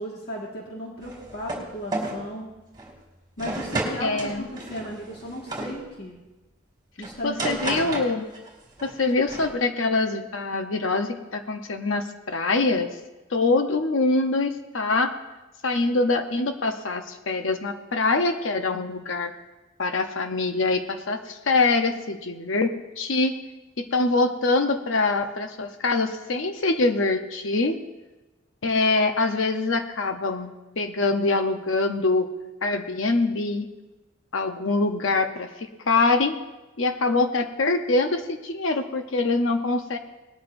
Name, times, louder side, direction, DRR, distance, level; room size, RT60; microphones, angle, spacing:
voice 1, 0.0-2.5 3.4-6.2 7.0-8.0, equal, 50° left, -3 dB, 1.7 m, -35 dB
sound 1, 1.0-1.7 1.9-2.2 2.7-2.9 3.4-5.7 7.0-8.5 8.8-9.5, right 2 dB, 20° right, 2.7 m, -32 dB
voice 2, 4.0-4.4 7.2-8.3 8.8-12.9 13.3-15.1 15.6-19.3 19.8-23.4 23.8-27.8 28.6-32.3 32.6-33.7 34.3-36.4 36.8-40.0, left 3 dB, 70° left, 6 dB, 0.8 m, -24 dB
19.5 x 13.0 x 2.6 m, 1.1 s
head